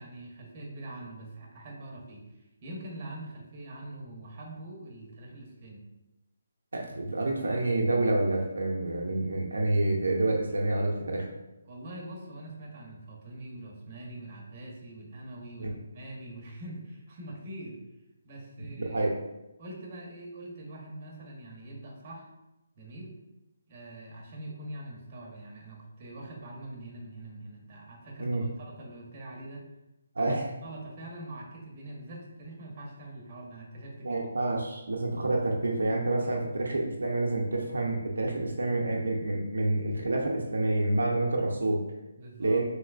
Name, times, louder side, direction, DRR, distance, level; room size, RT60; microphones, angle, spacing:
voice 1, 0.0-5.8 11.7-17.8 18.2-19.1 19.6-22.3 22.8-23.2 23.7-29.6 30.2-30.4 30.6-34.2 36.2-36.4 42.1-42.6, right 1 dB, 35° right, -2 dB, 0.8 m, -43 dB
voice 2, 6.7-11.3 15.6-15.8 18.6-19.2 28.2-28.4 30.2-30.5 34.0-41.8 42.4-42.6, right 2 dB, 85° right, 0 dB, 0.5 m, -28 dB
3.2 x 2.9 x 2.4 m, 0.96 s
hypercardioid pair, 160°, 0 cm